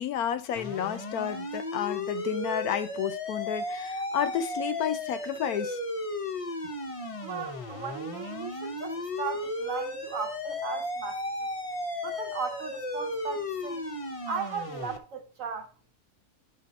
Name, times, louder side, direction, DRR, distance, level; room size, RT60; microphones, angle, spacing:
voice 1, 0.0-5.8, left 9 dB, 70° left, 1.1 m, -31 dB
sound 1, 0.6-15.0, left 1 dB, 30° left, 0.7 m, -35 dB
voice 2, 7.2-11.2 12.0-13.9 14.3-15.7, right 5 dB, 60° right, 1.2 m, -36 dB
10.5 x 4.2 x 4.1 m
omnidirectional pair, 1.7 m